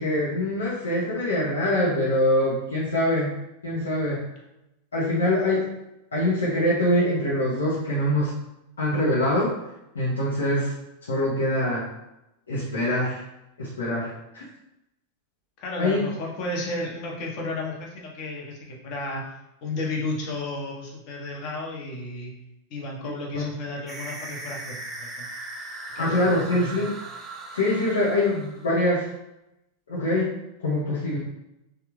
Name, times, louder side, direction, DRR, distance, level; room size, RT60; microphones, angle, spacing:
voice 1, 0.0-3.4 3.6-4.2 4.9-5.7 6.1-8.3 8.8-9.6 9.9-10.7 11.1-11.9 12.5-13.2 13.6-14.4 15.8-16.0 23.3-23.5 26.0-26.9 27.5-29.1 29.9-30.3 30.6-31.2, left 1 dB, 70° left, -7 dB, 0.8 m, -24 dB
voice 2, 15.6-19.3 19.6-22.3 22.7-25.3 25.9-26.9, left 2 dB, 40° left, -2 dB, 0.9 m, -33 dB
sound 1, 23.9-28.8, right 2 dB, 15° right, 0.5 m, -39 dB
3.3 x 2.3 x 3.1 m, 0.89 s
figure-of-eight pair, 90°, 0 cm